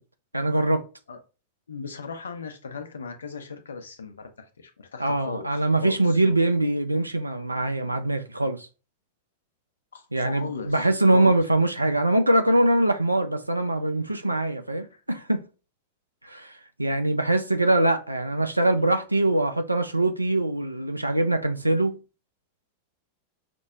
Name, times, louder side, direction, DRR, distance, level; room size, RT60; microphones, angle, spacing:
voice 1, 0.3-0.9 5.0-8.7 10.1-15.4 16.2-22.0, right 1 dB, 85° right, 0.4 m, -23 dB
voice 2, 1.7-4.3 4.6-6.2 9.9-11.4 14.8-15.0, left 5 dB, 70° left, 0.7 m, -37 dB
6.0 x 2.0 x 2.4 m
figure-of-eight pair, 90°, 0 cm